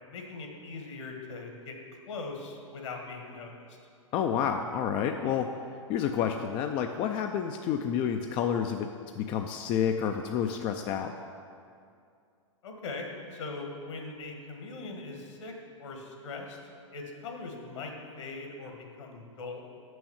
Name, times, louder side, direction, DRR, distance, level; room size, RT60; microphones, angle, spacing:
voice 1, 0.1-1.8 2.1-3.6 12.6-15.5 15.8-16.6 16.9-19.6, left 3 dB, 65° left, 2 dB, 1.6 m, -40 dB
voice 2, 4.1-5.5 5.9-8.9 9.2-11.1, left 8 dB, 30° left, 5 dB, 0.4 m, -29 dB
6.2 x 6.2 x 7.2 m, 2.3 s
hypercardioid pair, 110°, 16 cm